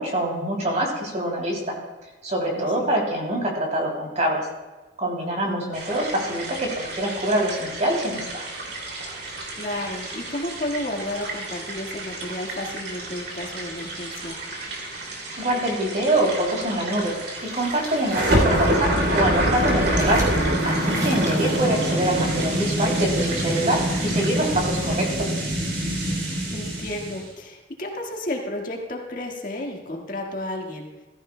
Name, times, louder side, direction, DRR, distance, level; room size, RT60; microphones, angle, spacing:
voice 1, 0.0-1.8 2.2-4.5 5.0-8.4 15.4-17.2 17.4-20.2 20.6-25.3, right 1 dB, 40° right, 0 dB, 2.9 m, -25 dB
voice 2, 2.5-2.9 5.2-5.7 9.6-14.4 21.0-21.4 26.5-30.9, left 1 dB, 50° left, 0 dB, 1.7 m, -32 dB
sound 1, 5.7-24.6, right 2 dB, 60° right, 2.7 m, -35 dB
sound 2, 16.9-21.8, equal, 20° right, 2.8 m, -40 dB
sound 3, 18.1-27.2, right 1 dB, 80° right, 3.3 m, -24 dB
15.0 x 14.5 x 2.2 m, 1.2 s
head